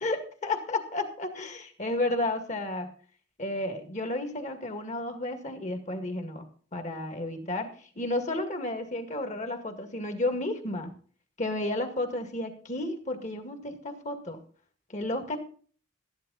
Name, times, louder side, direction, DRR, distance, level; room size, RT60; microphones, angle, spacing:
voice 1, 0.0-2.9 3.4-6.5 6.7-10.9 11.4-14.4 14.9-15.4, left 2 dB, 40° left, 7 dB, 2.0 m, -32 dB
13.0 x 11.0 x 4.0 m, 0.44 s
head